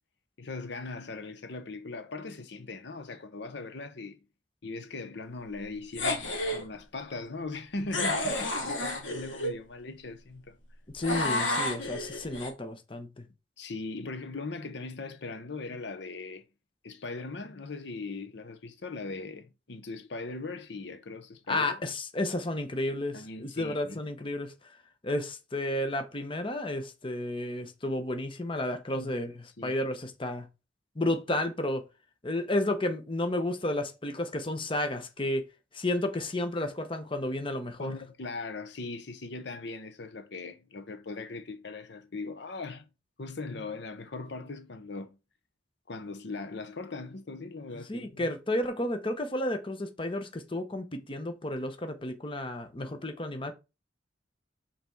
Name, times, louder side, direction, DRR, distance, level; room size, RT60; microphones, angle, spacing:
voice 1, 0.4-4.2 4.6-10.6 13.6-16.4 16.8-21.8 23.1-24.0 28.9-29.2 29.6-29.8 37.8-42.9 43.2-45.2 45.9-48.3, left 3 dB, 65° left, 0.8 m, -39 dB
sound 1, 5.9-6.6 7.9-9.5 11.0-12.5, left 1 dB, 90° left, 2.1 m, -30 dB
voice 2, 10.9-13.2 21.5-24.5 25.0-30.4 31.0-31.8 32.2-35.5 35.7-38.0 47.7-53.5, left 1 dB, 30° left, 1.0 m, -32 dB
5.9 x 4.3 x 4.5 m
head